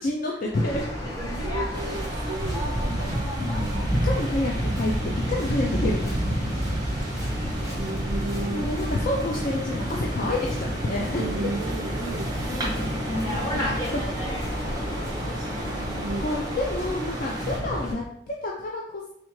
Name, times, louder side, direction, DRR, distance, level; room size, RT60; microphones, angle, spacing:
voice 1, 0.0-0.8 3.4-4.9 5.3-6.6 8.5-11.3 12.4-14.0 15.4-15.6 16.2-19.1, left 2 dB, 45° left, -2 dB, 0.4 m, -29 dB
Waves surf, 0.5-17.9, equal, 15° left, 0.8 m, -30 dB
voice 2, 1.2-3.3 7.2-7.3 7.6-8.7 11.1-12.5 15.4-16.3, right 2 dB, 75° right, 2 dB, 0.4 m, -34 dB
sound 1, 1.7-17.6, right 1 dB, 20° right, 0.6 m, -35 dB
3.6 x 3.3 x 3.0 m, 0.71 s
head